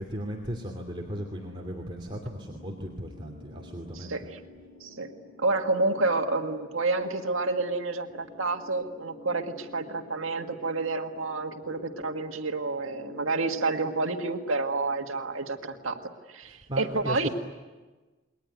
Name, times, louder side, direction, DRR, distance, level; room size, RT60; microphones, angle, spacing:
voice 1, 0.0-4.3 16.4-17.3, equal, 25° right, 0 dB, 2.7 m, -36 dB
sound 1, 1.0-16.1, left 2 dB, 25° left, 4.1 m, -49 dB
voice 2, 3.9-4.3 4.8-5.1 5.4-16.0 16.3-17.3, right 3 dB, 80° right, 4 dB, 1.8 m, -29 dB
28.5 x 22.0 x 9.3 m, 1.2 s
head